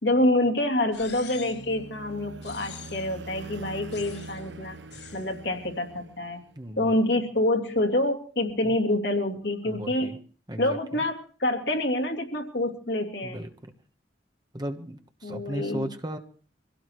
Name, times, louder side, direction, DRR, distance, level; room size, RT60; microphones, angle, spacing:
voice 1, 0.0-4.8 5.1-6.4 6.8-10.1 10.6-13.4 15.2-15.9, left 1 dB, 65° left, 3 dB, 2.8 m, -27 dB
sound 1, 0.9-1.7 2.4-3.2 3.9-4.4 4.9-5.3, left 7 dB, 85° left, 7.6 m, -45 dB
sound 2, 0.9-6.7, right 2 dB, 80° right, 1.0 m, -44 dB
voice 2, 6.6-7.0 8.6-8.7 9.6-10.2 10.5-11.0 13.2-13.7 14.5-16.2, equal, 25° right, 6 dB, 1.2 m, -36 dB
24.5 x 17.0 x 3.2 m, 0.42 s
head